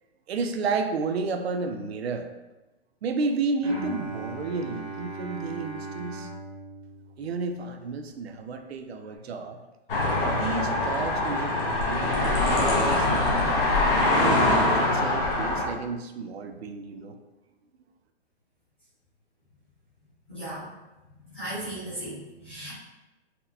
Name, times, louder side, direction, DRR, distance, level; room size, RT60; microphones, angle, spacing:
voice 1, 0.3-2.3 3.0-6.3 7.2-9.6 10.3-13.7 14.1-17.2, right 4 dB, 75° right, 6 dB, 0.5 m, -32 dB
Bowed string instrument, 3.6-7.8, right 3 dB, 90° right, 1.0 m, -38 dB
sound 1, 9.9-15.7, left 2 dB, 60° left, 0.9 m, -23 dB
voice 2, 20.3-20.7 21.3-22.7, right 1 dB, 10° left, -13 dB, 0.4 m, -36 dB
4.1 x 2.2 x 2.7 m, 1.0 s
hypercardioid pair, 175°, 32 cm